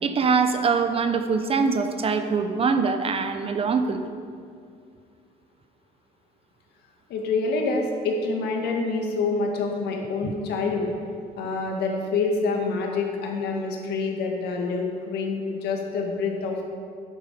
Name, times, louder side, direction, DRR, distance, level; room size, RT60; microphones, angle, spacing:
voice 1, 0.0-4.0 10.2-10.3, right 5 dB, 35° right, 9 dB, 0.7 m, -23 dB
voice 2, 7.1-10.9 11.4-16.6, left 3 dB, 75° left, 1 dB, 1.8 m, -27 dB
9.7 x 7.9 x 5.2 m, 2.2 s
cardioid pair, 110°, 17 cm